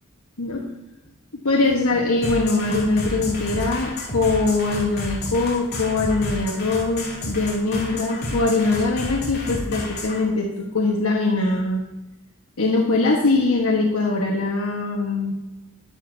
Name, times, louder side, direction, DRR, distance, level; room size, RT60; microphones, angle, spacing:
voice 1, 1.4-11.8 12.6-15.3, left 3 dB, 85° left, -1 dB, 1.5 m, -22 dB
sound 1, 2.2-10.2, left 1 dB, 50° left, 2.9 m, -30 dB
11.5 x 10.0 x 2.8 m, 1.1 s
head